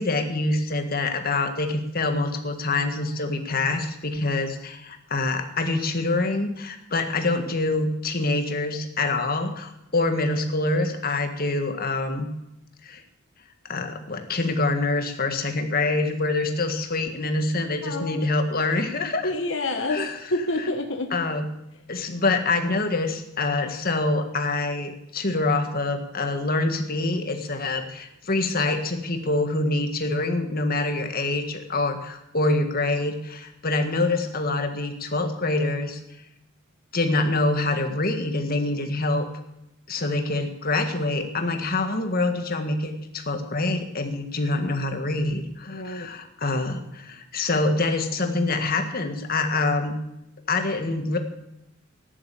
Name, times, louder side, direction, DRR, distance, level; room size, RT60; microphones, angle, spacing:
voice 1, 0.0-12.3 12.8-13.0 13.7-19.3 19.9-20.2 21.1-21.4 21.9-36.0 36.9-39.3 39.9-50.0 50.5-51.2, left 2 dB, 45° left, 6 dB, 1.8 m, -25 dB
voice 2, 17.8-18.3 19.2-20.0 20.3-21.1 45.7-46.1, left 2 dB, 65° left, 3 dB, 1.5 m, -28 dB
14.5 x 11.0 x 8.6 m, 0.85 s
head